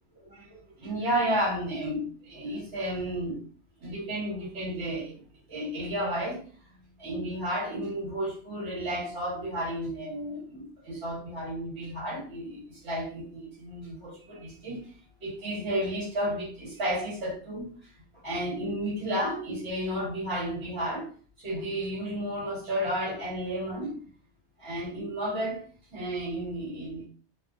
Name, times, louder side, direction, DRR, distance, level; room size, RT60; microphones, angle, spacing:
voice 1, 0.8-3.4 3.8-5.2 5.5-6.4 7.0-14.9 15.2-17.7 18.2-21.1 21.4-24.0 24.6-25.6 25.9-27.1, right 1 dB, 80° right, 1.6 m, -32 dB
3.1 x 2.2 x 2.5 m
omnidirectional pair, 1.1 m